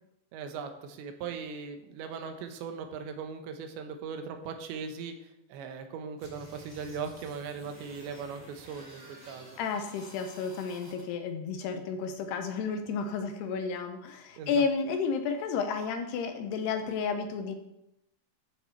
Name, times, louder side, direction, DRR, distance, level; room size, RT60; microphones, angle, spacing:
voice 1, 0.3-5.2 5.5-9.6 14.4-14.7, right 6 dB, 80° right, 6 dB, 3.4 m, -39 dB
sound 1, 6.2-11.0, right 1 dB, 10° right, 2.1 m, -51 dB
voice 2, 9.6-17.6, left 5 dB, 80° left, 7 dB, 2.7 m, -32 dB
14.0 x 7.2 x 4.6 m, 0.83 s
omnidirectional pair, 5.1 m